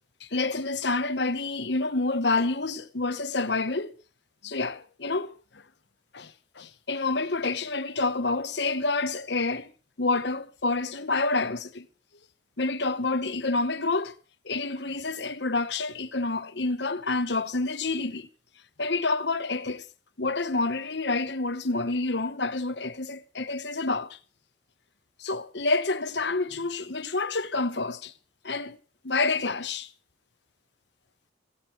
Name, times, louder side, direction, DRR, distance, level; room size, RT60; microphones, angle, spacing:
voice 1, 0.2-3.9 4.4-5.3 6.1-6.3 6.6-9.7 10.0-11.8 12.6-14.1 14.4-18.3 18.8-19.8 20.2-24.2 25.2-28.1 28.4-28.8 29.0-29.9, left 3 dB, 65° left, 1.2 m, -28 dB
17.0 x 16.5 x 4.7 m
head